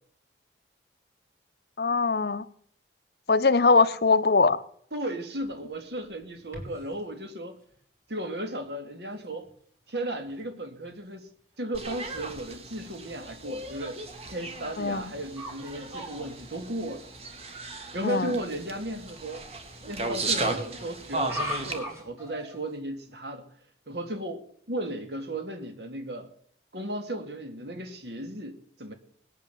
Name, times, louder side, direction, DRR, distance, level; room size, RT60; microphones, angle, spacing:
voice 1, 1.8-2.4 3.3-4.6 14.8-15.0 18.0-18.3, left 4 dB, 60° left, 0.7 m, -21 dB
voice 2, 4.9-7.6 8.1-9.5 9.9-11.3 11.6-14.0 14.3-17.1 17.9-19.4 19.9-23.5 23.9-26.3 26.7-28.9, right 1 dB, 70° right, 2.1 m, -35 dB
sound 1, 5.4-7.0 7.7-7.8 8.5-8.6 9.2-9.5 9.9-10.0 10.2-10.5 11.0-11.1 14.1-14.3 14.9-15.6 15.8-16.3 17.7-18.0 19.1-19.6 21.2-22.7, equal, 15° right, 3.7 m, -40 dB
sound 2, 11.7-21.8, right 2 dB, 35° right, 1.8 m, -36 dB
19.5 x 8.7 x 7.2 m
head